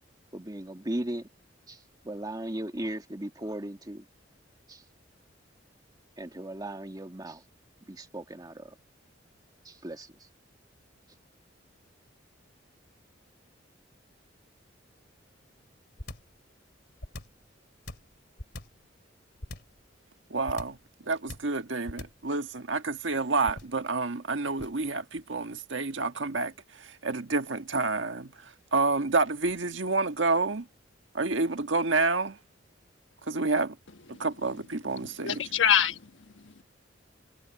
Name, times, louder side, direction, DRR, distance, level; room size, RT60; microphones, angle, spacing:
voice 1, 0.3-1.3 1.7-4.1 4.7-4.8 6.2-7.4 7.8-8.7 9.6-10.2, right 1 dB, 20° right, 2.0 m, -37 dB
sound 1, 16.0-16.4 17.0-17.4 17.9-18.8 19.4-19.8 20.5-20.9 21.3-21.6 21.9-22.3 23.4-23.8 24.6-24.9, left 1 dB, 60° left, 2.9 m, -41 dB
voice 2, 20.3-20.8 21.1-26.5 26.8-28.3 28.7-30.7 31.1-32.4 33.3-33.7 34.2-35.4, right 3 dB, 80° right, 1.5 m, -28 dB
voice 3, 34.9-36.6, left 8 dB, 80° left, 1.3 m, -27 dB
head